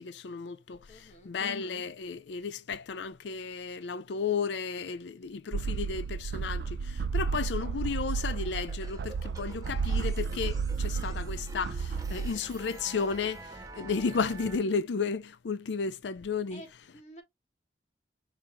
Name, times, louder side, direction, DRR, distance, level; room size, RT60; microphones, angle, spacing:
voice 1, 0.0-16.6, left 5 dB, 80° left, 0.5 m, -33 dB
voice 2, 0.9-1.3 16.5-17.2, equal, 40° left, 1.5 m, -50 dB
sound 1, 5.5-12.3, right 5 dB, 65° right, 0.3 m, -32 dB
sound 2, 8.4-14.6, right 2 dB, 20° right, 0.7 m, -47 dB
5.1 x 2.8 x 3.4 m
head